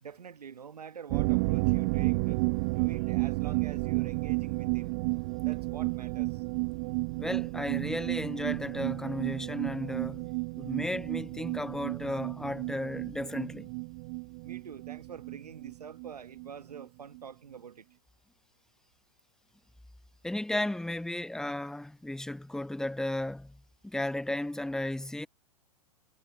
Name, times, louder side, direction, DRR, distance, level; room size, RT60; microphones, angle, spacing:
voice 1, 0.0-2.4 2.8-4.9 5.4-6.4 14.4-17.9, right 7 dB, 80° right, 1.1 m, -46 dB
sound 1, 1.1-16.5 16.7-16.8 17.2-17.3, right 29 dB, 40° right, 0.6 m, -32 dB
voice 2, 7.2-10.3 10.6-13.7 20.2-23.6 23.8-25.3, left 1 dB, 5° left, 0.9 m, -34 dB
figure-of-eight pair, 105°, 20 cm